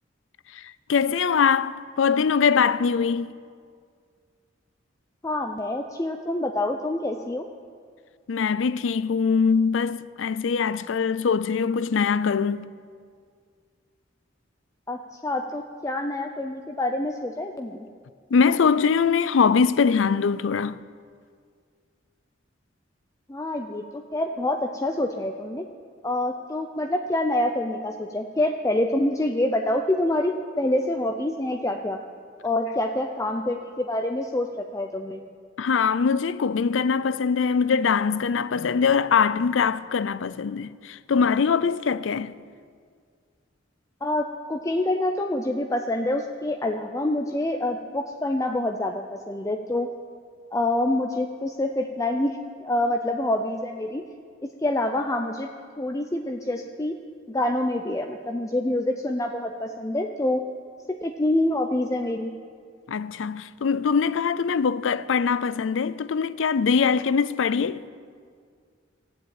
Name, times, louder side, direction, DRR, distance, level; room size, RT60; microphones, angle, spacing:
voice 1, 0.5-3.4 8.3-12.7 18.3-20.8 35.6-42.4 62.9-67.8, left 6 dB, 90° left, 0.5 m, -22 dB
voice 2, 5.2-7.5 14.9-17.9 23.3-25.6 26.0-32.0 32.4-35.2 44.0-49.9 50.5-54.0 54.4-55.5 55.8-57.0 57.3-60.4 61.0-62.3, left 1 dB, 15° left, 0.5 m, -26 dB
15.0 x 7.7 x 8.9 m
head